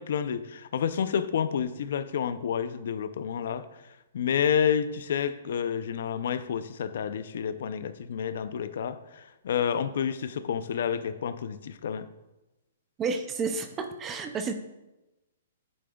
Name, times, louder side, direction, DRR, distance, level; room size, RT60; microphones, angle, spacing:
voice 1, 0.0-12.1, left 8 dB, 55° left, 12 dB, 0.5 m, -29 dB
voice 2, 13.0-14.5, right 4 dB, 15° right, 8 dB, 0.4 m, -31 dB
8.8 x 8.5 x 2.3 m, 1.0 s
hypercardioid pair, 175°, 0 cm